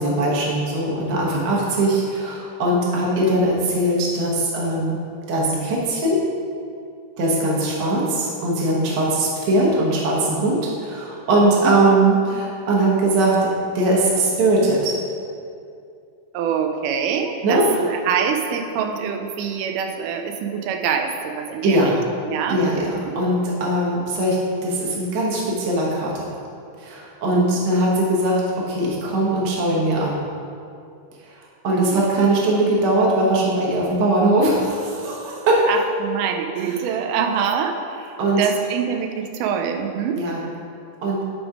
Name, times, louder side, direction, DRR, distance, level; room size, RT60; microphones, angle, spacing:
voice 1, 0.0-5.0 5.3-6.2 7.2-13.5 13.7-14.9 17.4-17.6 21.6-22.0 22.5-24.4 24.6-26.2 26.8-28.4 28.7-30.2 31.6-35.6 38.2-38.4 40.2-40.4 41.0-41.2, right 1 dB, 55° right, -4 dB, 1.2 m, -20 dB
voice 2, 16.3-21.8 22.2-23.2 27.3-27.5 31.7-32.3 35.7-40.2, right 7 dB, 90° right, 4 dB, 2.1 m, -25 dB
10.0 x 3.5 x 4.9 m, 2.4 s
omnidirectional pair, 3.6 m